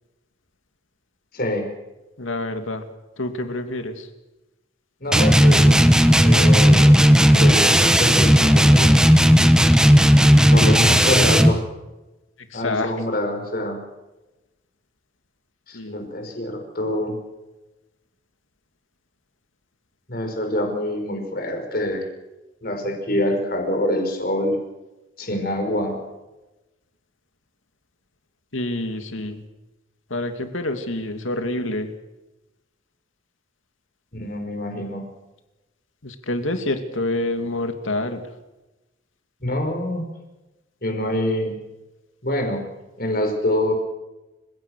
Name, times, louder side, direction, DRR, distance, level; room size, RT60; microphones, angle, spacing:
voice 1, 1.3-1.7 5.0-5.8 6.2-6.9 7.3-8.9 10.5-11.6 12.5-13.8 15.7-17.2 20.1-22.0 22.6-24.6 25.2-26.0 34.1-35.0 39.4-40.1 40.8-41.6 42.2-42.6 43.0-43.7, left 1 dB, 50° left, 4 dB, 5.4 m, -25 dB
voice 2, 2.2-2.9 3.2-4.1 10.6-10.7 12.5-12.9 15.7-16.1 28.5-29.4 30.1-31.9 36.0-38.3, left 2 dB, 85° left, 7 dB, 2.7 m, -27 dB
sound 1, 5.1-11.6, equal, 5° right, 1.1 m, -14 dB
30.0 x 17.0 x 6.5 m, 1.0 s
head